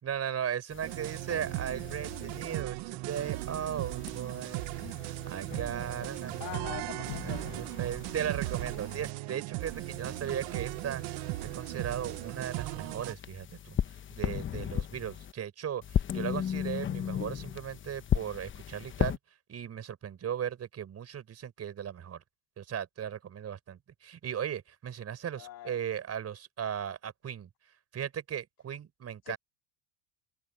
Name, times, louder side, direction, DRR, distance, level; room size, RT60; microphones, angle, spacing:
voice 1, 0.0-13.8 14.1-19.2 19.5-22.2 22.6-27.5 27.9-29.4, right 9 dB, 30° right, 6.2 m, -37 dB
sound 1, 0.7-2.6 3.1-6.6 7.1-9.1 9.6-15.3 15.8-19.2, left 9 dB, 25° left, 0.9 m, -37 dB
sound 2, 0.8-13.1, right 23 dB, 65° right, 0.9 m, -37 dB
voice 2, 6.4-7.6 25.4-25.8 29.3-29.4, left 13 dB, 45° left, 2.5 m, -42 dB
cardioid pair, 150°, 47 cm